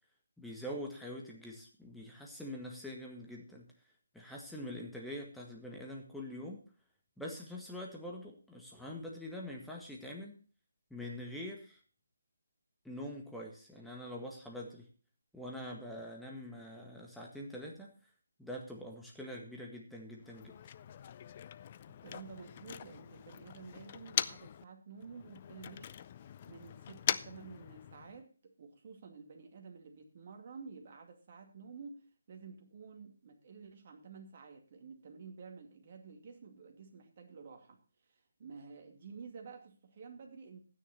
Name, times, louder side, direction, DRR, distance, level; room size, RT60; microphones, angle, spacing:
voice 1, 0.4-3.7 4.1-6.6 7.2-10.4 10.9-11.8 12.8-14.9 15.3-17.9 18.4-20.5, left 1 dB, ahead, -1 dB, 1.7 m, -44 dB
Motor vehicle (road), 20.2-24.6 25.0-28.2, left 9 dB, 30° left, 0.4 m, -41 dB
voice 2, 21.9-25.9 26.4-37.8 38.4-40.6, right 5 dB, 40° right, 3 dB, 2.3 m, -51 dB
12.5 x 9.7 x 4.2 m, 0.39 s
figure-of-eight pair, 150°, 0 cm